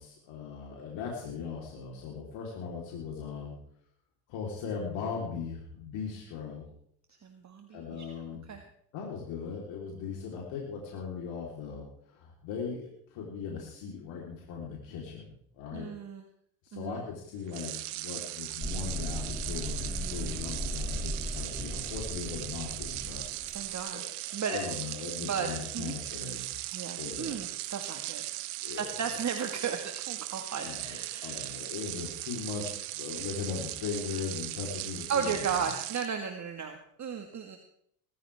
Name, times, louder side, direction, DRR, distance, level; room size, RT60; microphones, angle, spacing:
voice 1, 0.0-3.6 4.3-6.7 7.7-8.5 8.9-15.9 16.6-23.6 23.9-24.0 24.3-26.5 27.0-27.4 28.6-29.0 30.5-35.7, left 6 dB, 65° left, -2 dB, 4.1 m, -39 dB
voice 2, 7.2-8.1 8.5-8.6 15.7-16.2 16.7-17.0 19.9-20.4 23.5-24.0 24.3-24.6 25.2-25.9 26.7-28.2 28.7-31.5 35.1-37.6, right 6 dB, 35° right, 5 dB, 1.9 m, -35 dB
sound 1, 17.5-36.1, right 17 dB, 75° right, 1.2 m, -38 dB
sound 2, 18.6-23.7, equal, ahead, 2.6 m, -37 dB
20.0 x 14.5 x 3.6 m, 0.68 s
hypercardioid pair, 75°, 48 cm